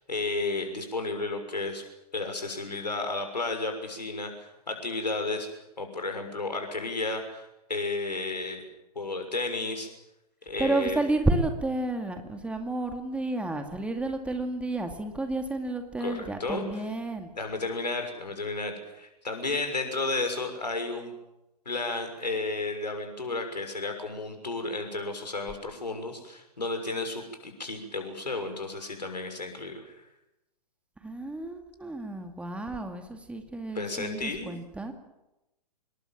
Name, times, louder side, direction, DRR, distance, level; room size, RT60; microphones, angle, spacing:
voice 1, 0.0-1.8 2.1-5.5 5.8-8.6 8.9-9.9 10.4-11.0 16.0-16.6 17.4-21.1 21.6-30.0 33.7-34.5, left 3 dB, 80° left, 6 dB, 6.4 m, -32 dB
voice 2, 10.6-17.3 31.0-34.9, right 2 dB, 5° right, 5 dB, 2.3 m, -31 dB
26.5 x 21.5 x 7.5 m, 0.92 s
figure-of-eight pair, 115°, 21 cm